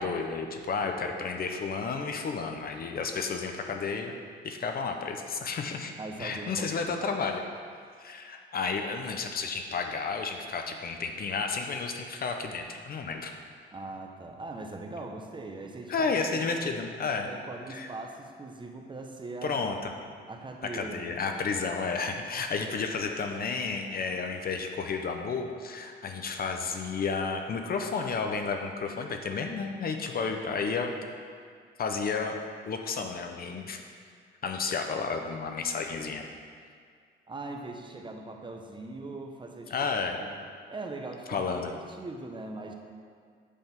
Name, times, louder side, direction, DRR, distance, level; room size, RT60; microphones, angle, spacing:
voice 1, 0.0-4.1 4.4-5.9 6.2-7.4 8.0-13.3 15.9-17.3 17.7-17.9 19.4-19.9 20.7-30.9 31.8-33.8 34.4-36.2 39.7-40.2 41.3-41.7, left 5 dB, 50° left, 4 dB, 0.7 m, -32 dB
voice 2, 6.0-7.2 13.7-16.5 17.0-19.6 20.3-21.3 22.6-22.7 37.3-39.7 40.2-40.3 40.7-42.7, right 2 dB, 25° right, 3 dB, 0.8 m, -41 dB
8.3 x 3.6 x 5.8 m, 2.1 s
cardioid pair, 90°, 20 cm